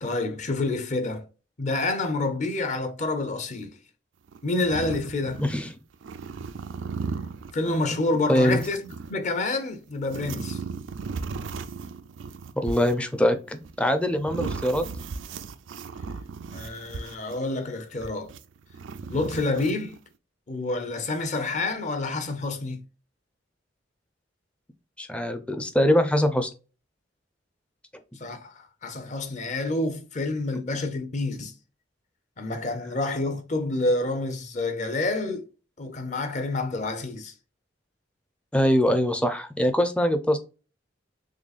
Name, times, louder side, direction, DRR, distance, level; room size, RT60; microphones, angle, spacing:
voice 1, 0.0-1.2 1.6-3.8 4.4-5.4 7.5-10.6 16.5-18.3 19.1-20.0 20.5-22.8 28.2-31.5 32.4-35.5 35.8-37.3, left 2 dB, 40° left, 0.7 m, -28 dB
sound 1, 4.3-5.6 5.9-9.1 9.9-17.5 18.0-20.0, right 5 dB, 85° right, 0.4 m, -36 dB
voice 2, 5.4-5.7 8.3-8.6 12.6-14.9 25.0-26.5 38.5-40.4, left 1 dB, 5° left, 0.4 m, -23 dB
3.8 x 3.4 x 2.4 m
head